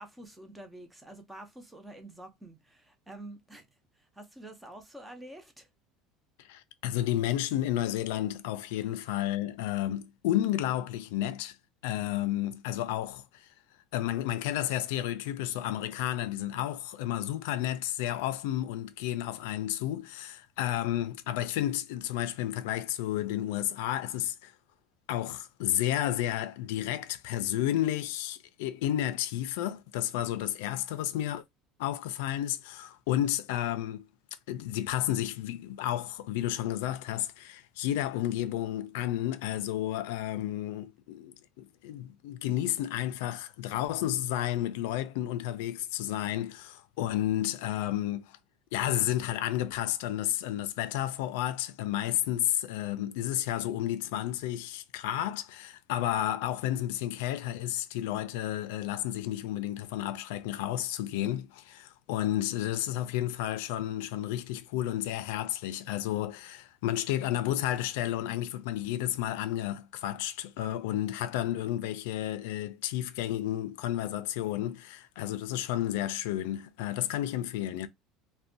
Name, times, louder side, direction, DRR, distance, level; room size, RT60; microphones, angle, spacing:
voice 1, 0.0-5.7 8.8-8.9, right 1 dB, 5° right, 0.4 m, -48 dB
voice 2, 6.4-11.6 11.8-13.5 13.9-24.5 25.1-31.4 31.8-34.1 34.5-48.4 48.7-77.9, left 13 dB, 85° left, 0.3 m, -31 dB
2.5 x 2.1 x 2.5 m
cardioid pair, 165°, 0 cm